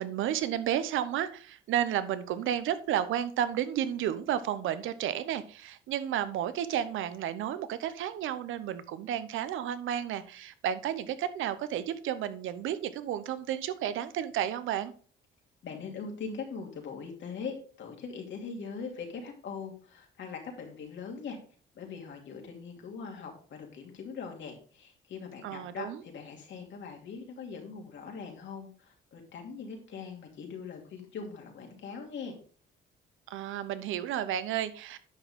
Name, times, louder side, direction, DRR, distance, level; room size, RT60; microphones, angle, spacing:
voice 1, 0.0-14.9 25.4-26.0 33.3-35.0, right 10 dB, 80° right, 13 dB, 0.8 m, -32 dB
voice 2, 15.6-21.4 21.7-32.4, left 5 dB, 70° left, 2 dB, 2.6 m, -41 dB
9.9 x 5.9 x 3.6 m, 0.42 s
cardioid pair, 90°, 20 cm